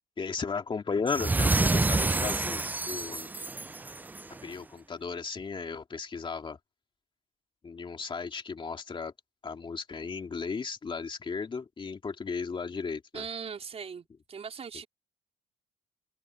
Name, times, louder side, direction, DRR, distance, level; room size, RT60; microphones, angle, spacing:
voice 1, 0.2-3.3 4.3-6.6 7.6-9.1 9.4-13.3, left 5 dB, 30° left, 2.6 m, -35 dB
sound 1, 1.1-4.4, right 3 dB, 10° right, 0.4 m, -28 dB
voice 2, 13.1-14.9, right 6 dB, 35° right, 4.4 m, -40 dB
cardioid pair, 110°, 17 cm